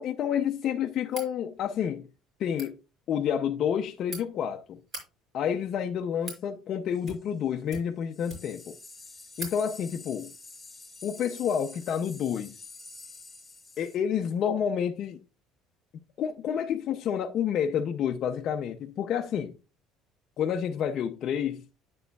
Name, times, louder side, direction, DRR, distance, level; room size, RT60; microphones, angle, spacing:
voice 1, 0.0-2.1 2.4-2.8 3.1-4.8 5.3-8.7 9.4-10.3 11.0-12.6 13.8-15.2 16.2-19.5 20.4-21.6, left 8 dB, 40° left, 0.5 m, -29 dB
sound 1, 1.1-1.3 2.4-2.7 3.7-4.2 4.8-5.0 5.8-6.4 7.0-7.4 7.7-8.6 9.0-9.1 9.3-9.6, right 1 dB, 35° right, 4.5 m, -41 dB
sound 2, 6.9-7.3 8.1-14.0, left 3 dB, 10° left, 0.7 m, -48 dB
9.0 x 7.6 x 2.2 m
cardioid pair, 175°, 0 cm